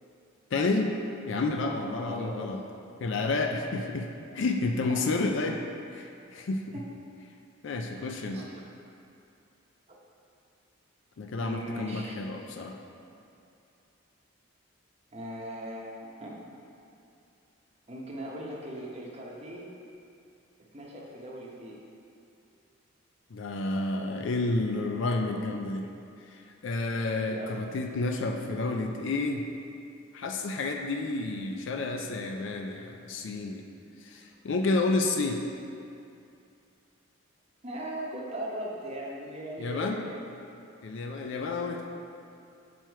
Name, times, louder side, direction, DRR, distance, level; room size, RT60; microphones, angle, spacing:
voice 1, 0.5-0.9 1.3-2.6 3.0-5.6 5.9-6.8 7.6-8.4 11.2-12.8 23.3-25.9 26.3-29.5 30.1-33.6 34.0-35.4 39.6-40.0 40.8-41.9, left 3 dB, 60° left, 3 dB, 0.4 m, -30 dB
voice 2, 2.0-2.7 4.9-5.1 6.7-6.9 8.3-8.6 11.4-12.1 15.1-16.5 17.9-19.7 20.7-21.8 27.3-27.6 37.6-40.2, right 1 dB, 30° right, -3 dB, 0.9 m, -39 dB
6.4 x 4.4 x 4.5 m, 2.6 s
head